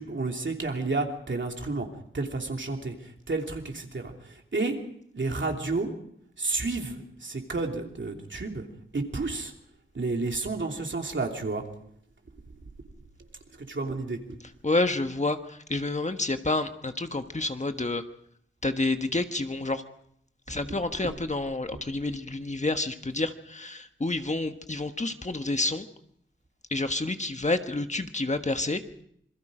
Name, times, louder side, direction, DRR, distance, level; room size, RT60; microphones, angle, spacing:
voice 1, 0.0-1.9 2.1-3.0 3.3-4.1 4.5-4.8 5.1-5.9 6.4-8.6 8.9-9.5 9.9-11.6 13.6-14.4, right 3 dB, 65° right, 2 dB, 3.0 m, -30 dB
voice 2, 14.6-18.0 18.6-19.8 20.5-25.8 26.7-28.8, left 2 dB, 35° left, 7 dB, 1.4 m, -29 dB
27.0 x 22.0 x 5.1 m, 0.70 s
wide cardioid pair, 70°, 20 cm